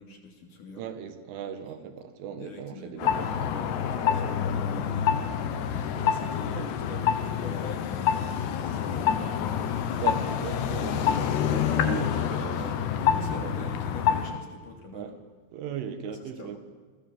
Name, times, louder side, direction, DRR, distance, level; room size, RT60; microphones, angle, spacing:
voice 1, 0.0-0.8 2.3-5.4 6.0-9.8 12.6-12.7 13.0-15.1 16.1-16.6, left 3 dB, 45° left, 4.1 m, -43 dB
voice 2, 0.8-3.5 5.9-6.2 6.5-6.7 10.0-12.9 13.3-13.7 14.9-15.2 15.5-16.6, right 7 dB, 75° right, 4.3 m, -38 dB
sound 1, 3.0-14.4, left 8 dB, 65° left, 3.4 m, -27 dB
30.0 x 23.5 x 7.5 m
omnidirectional pair, 5.7 m